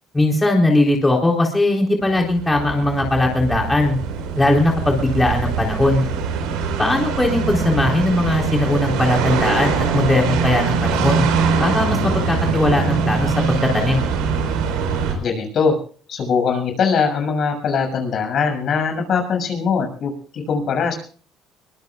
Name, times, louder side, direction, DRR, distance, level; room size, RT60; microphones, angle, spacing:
voice 1, 0.1-4.0 4.4-6.1 6.8-11.3 11.6-14.0, left 2 dB, 15° left, 0 dB, 3.9 m, -19 dB
sound 1, 2.0-15.1, right 5 dB, 90° right, 4.6 m, -22 dB
voice 2, 15.2-15.8 16.1-20.9, left 5 dB, 55° left, 4 dB, 6.7 m, -21 dB
23.5 x 21.0 x 2.4 m, 0.42 s
supercardioid pair, 90°, 0 cm